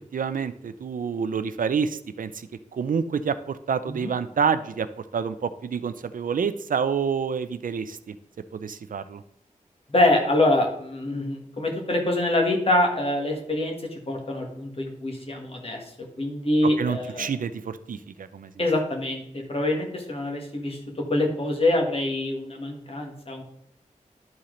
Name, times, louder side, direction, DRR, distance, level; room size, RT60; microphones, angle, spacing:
voice 1, 0.1-4.9 5.1-8.2 8.5-9.2 16.8-18.5, right 6 dB, 85° right, 12 dB, 0.5 m, -28 dB
voice 2, 9.9-15.8 16.2-17.3 18.6-20.8 21.1-23.4, left 1 dB, 45° left, 1 dB, 1.7 m, -25 dB
11.0 x 4.3 x 3.8 m, 0.72 s
wide cardioid pair, 90°, 14 cm